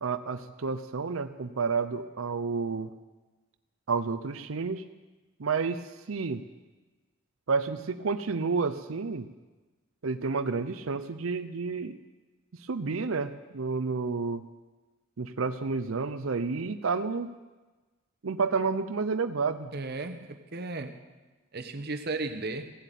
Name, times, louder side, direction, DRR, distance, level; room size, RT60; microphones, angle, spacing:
voice 1, 0.0-2.9 3.9-4.8 5.4-6.4 7.5-9.3 10.0-12.0 12.6-14.4 15.2-17.3 18.2-19.7, right 4 dB, 80° right, 10 dB, 0.6 m, -30 dB
voice 2, 19.7-21.0 21.5-22.7, right 3 dB, 50° right, 8 dB, 1.1 m, -35 dB
15.5 x 7.9 x 9.2 m, 1.2 s
head